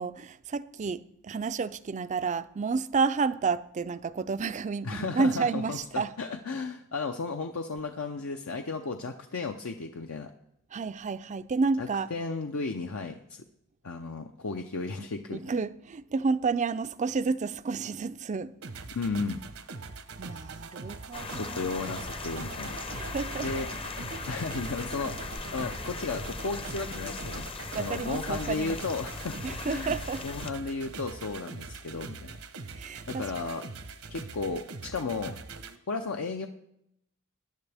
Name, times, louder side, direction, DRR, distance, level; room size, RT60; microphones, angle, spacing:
voice 1, 0.0-6.1 10.7-12.1 15.0-18.5 20.2-21.9 22.9-23.6 27.7-28.8 29.4-30.3 32.8-33.3, right 4 dB, 35° right, 0.4 m, -30 dB
voice 2, 4.8-10.3 11.8-13.4 13.8-15.4 18.9-19.4 21.4-22.8 23.4-23.7 24.3-25.1 25.5-27.5 27.8-30.0 30.2-32.4 33.1-33.7 34.1-35.4 35.9-36.5, left 4 dB, 70° left, 0.7 m, -34 dB
sound 1, 18.6-35.8, right 3 dB, 70° right, 0.9 m, -42 dB
sound 2, 21.1-30.5, left 3 dB, 25° left, 0.7 m, -38 dB
20.5 x 11.0 x 3.5 m
head